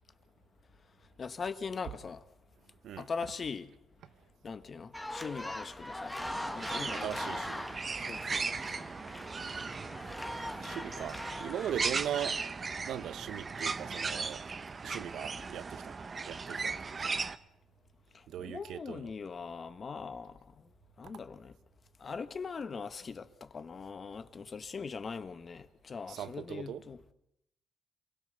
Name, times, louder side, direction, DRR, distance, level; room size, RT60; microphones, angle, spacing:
voice 1, 1.2-2.2 3.0-3.7 4.4-6.2 6.5-7.4 7.9-8.9 18.1-20.4 21.0-21.5 22.0-27.0, left 5 dB, 40° left, 1.4 m, -41 dB
sound 1, 4.9-12.0, left 1 dB, 10° left, 1.7 m, -41 dB
sound 2, 6.2-17.4, right 4 dB, 35° right, 1.0 m, -37 dB
voice 2, 6.9-7.7 10.6-12.4 12.9-14.4 14.8-16.0 16.2-17.2 18.3-19.1 26.1-26.8, right 10 dB, 75° right, 1.0 m, -39 dB
28.0 x 17.0 x 6.9 m
cardioid pair, 90°, 0 cm